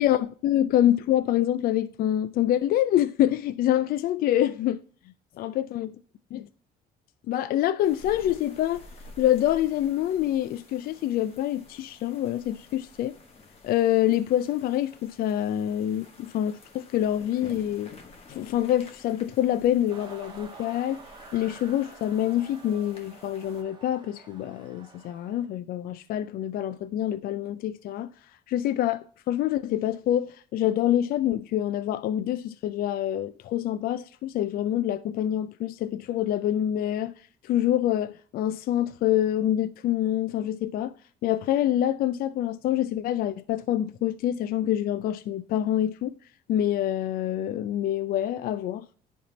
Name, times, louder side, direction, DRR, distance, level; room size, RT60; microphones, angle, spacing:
voice 1, 0.0-4.8 5.4-5.9 6.3-6.5 7.3-8.8 9.2-13.1 13.6-17.9 18.3-21.0 21.3-28.1 28.5-37.1 37.4-40.9 41.2-46.1 46.5-48.9, left 12 dB, 60° left, 0.4 m, -26 dB
sound 1, 7.8-23.6, left 2 dB, 35° left, 1.6 m, -50 dB
sound 2, 19.9-25.5, right 4 dB, 25° right, 1.2 m, -49 dB
10.0 x 3.6 x 4.0 m
cardioid pair, 110°, 17 cm